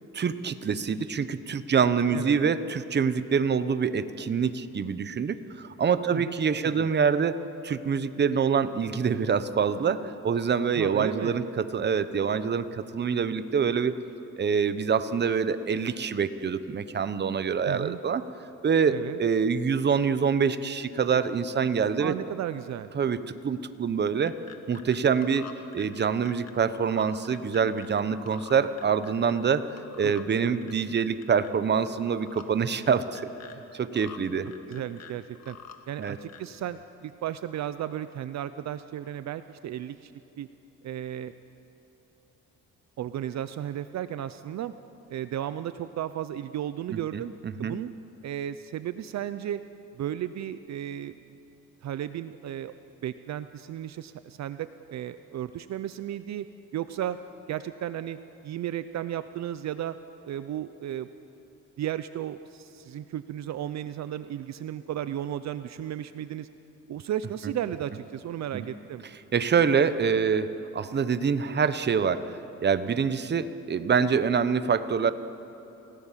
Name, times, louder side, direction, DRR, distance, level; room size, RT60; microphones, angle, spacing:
voice 1, 0.1-13.9 14.4-18.2 18.6-22.1 22.9-24.3 24.7-29.7 30.0-33.3 33.7-34.5 36.0-36.2 46.9-47.7 68.5-68.6 69.3-72.3 72.6-75.1, right 6 dB, 35° right, 12 dB, 0.9 m, -26 dB
voice 2, 2.1-2.4 6.1-6.3 6.6-6.9 10.7-11.4 17.7-18.0 18.9-19.2 22.0-22.9 30.0-30.1 30.4-30.7 34.7-35.6 35.9-40.5 40.8-41.3 43.0-44.7 45.1-47.3 47.6-47.9 48.2-49.6 49.9-51.4 51.8-52.7 53.0-56.5 56.7-57.2 57.5-58.2 58.4-60.0 60.2-61.1 61.8-66.5 66.9-69.0, right 11 dB, 60° right, 12 dB, 0.7 m, -34 dB
sound 1, 24.0-25.0 25.2-28.0 28.3-29.5 29.8-30.3 30.6-31.5 31.9-32.4 32.9-33.5 33.9-34.2 34.5-35.8 36.0-36.6, left 8 dB, 55° left, 1.9 m, -47 dB
28.5 x 17.0 x 7.5 m, 3.0 s
cardioid pair, 115°, 30 cm